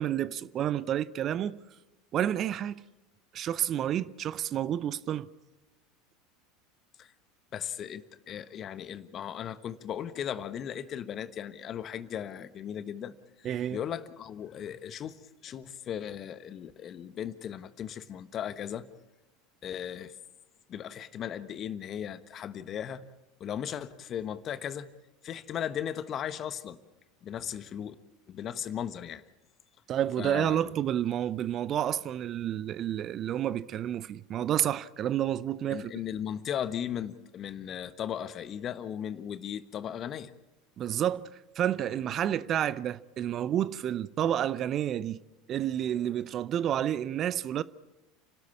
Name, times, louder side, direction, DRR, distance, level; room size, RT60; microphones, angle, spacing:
voice 1, 0.0-1.6 2.1-2.8 3.3-5.3 13.4-13.8 29.9-35.9 40.8-41.3 41.6-45.2 45.5-47.6, right 10 dB, 40° right, 0.6 m, -30 dB
voice 2, 7.5-18.9 19.6-20.1 20.7-23.0 23.4-24.9 25.2-26.8 27.2-27.9 28.3-29.2 30.2-30.6 35.7-40.3, left 9 dB, 40° left, 1.2 m, -37 dB
29.0 x 13.0 x 8.5 m
hypercardioid pair, 80°, 0 cm